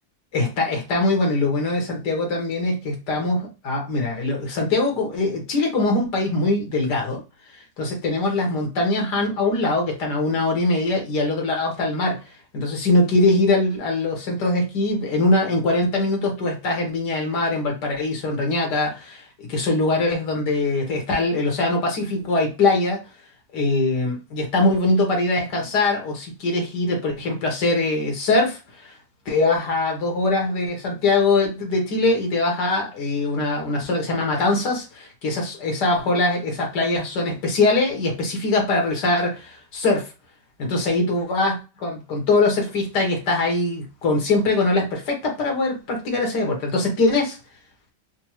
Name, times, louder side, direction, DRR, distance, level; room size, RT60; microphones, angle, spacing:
voice 1, 0.3-7.2 7.8-12.2 12.5-23.0 23.5-29.0 29.3-40.1 40.6-47.4, left 2 dB, 85° left, 1 dB, 1.8 m, -22 dB
4.3 x 2.3 x 3.0 m, 0.29 s
omnidirectional pair, 1.7 m